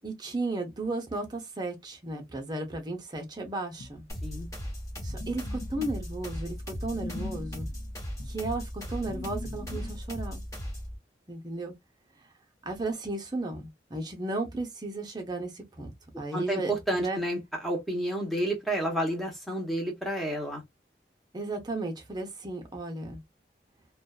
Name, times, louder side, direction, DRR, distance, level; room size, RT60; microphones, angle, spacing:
voice 1, 0.0-4.0 5.0-7.7 8.3-10.4 11.3-11.7 12.6-17.2 21.3-23.2, right 2 dB, 25° right, 0.7 m, -34 dB
sound 1, 3.8-10.0, left 2 dB, 60° left, 0.6 m, -42 dB
sound 2, 4.1-11.0, equal, 20° left, 1.1 m, -37 dB
voice 2, 16.3-20.6, right 1 dB, ahead, 0.9 m, -30 dB
2.5 x 2.2 x 2.3 m
head